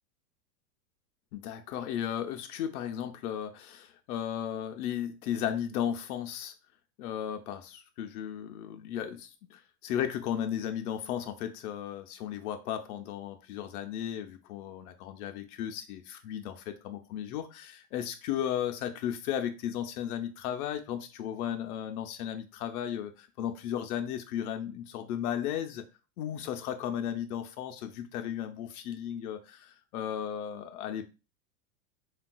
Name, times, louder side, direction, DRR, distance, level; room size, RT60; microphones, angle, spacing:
voice 1, 1.3-6.5 7.0-25.8 26.2-31.1, left 10 dB, 75° left, 0.6 m, -35 dB
3.2 x 2.3 x 2.2 m
supercardioid pair, 140°, 44 cm